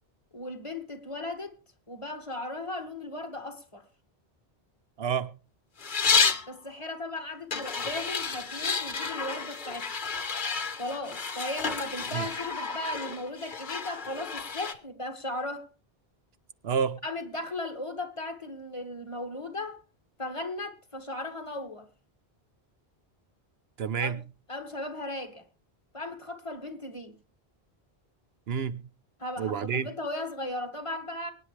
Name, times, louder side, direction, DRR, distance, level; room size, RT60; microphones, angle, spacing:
voice 1, 0.3-1.5 1.9-3.9 6.5-9.9 10.8-15.7 17.0-19.8 20.2-21.9 24.0-24.2 24.5-25.4 25.9-27.1 29.2-31.3, left 2 dB, 30° left, 1.8 m, -36 dB
voice 2, 5.0-5.3 12.1-12.3 16.6-17.0 23.8-24.2 28.5-28.8 29.4-29.9, right 7 dB, 75° right, 1.0 m, -29 dB
sound 1, 5.8-6.5 7.5-14.7, left 5 dB, 50° left, 1.2 m, -30 dB
23.5 x 9.7 x 3.3 m
omnidirectional pair, 1.1 m